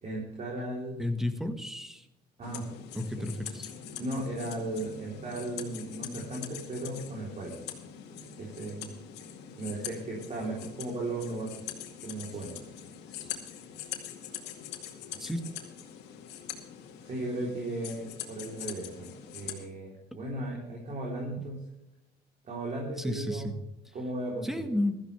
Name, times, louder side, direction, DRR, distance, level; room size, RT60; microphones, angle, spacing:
voice 1, 0.0-1.0 2.4-2.7 4.0-7.6 8.4-8.9 9.6-11.5 12.0-12.5 17.0-21.6 22.4-23.5 23.9-24.6, right 2 dB, 45° right, -3 dB, 3.9 m, -36 dB
voice 2, 1.0-2.1 2.9-3.7 13.1-13.3 15.2-15.4 23.0-23.5 24.4-25.0, left 1 dB, ahead, 8 dB, 1.6 m, -32 dB
sound 1, 2.4-19.7, left 9 dB, 85° left, 2.2 m, -43 dB
16.0 x 13.5 x 3.5 m, 0.92 s
cardioid pair, 110°, 17 cm